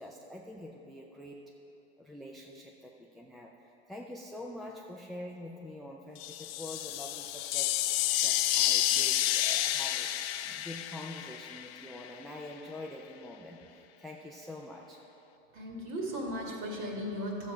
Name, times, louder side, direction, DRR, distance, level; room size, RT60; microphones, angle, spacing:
voice 1, 0.0-1.5 2.0-3.5 3.9-7.7 8.2-10.1 10.4-15.0, left 1 dB, ahead, -1 dB, 0.4 m, -45 dB
sound 1, 6.2-12.1, left 13 dB, 60° left, 0.6 m, -30 dB
voice 2, 15.5-17.5, equal, 40° right, 0 dB, 2.1 m, -36 dB
12.0 x 7.4 x 5.1 m, 2.9 s
hypercardioid pair, 125°, 34 cm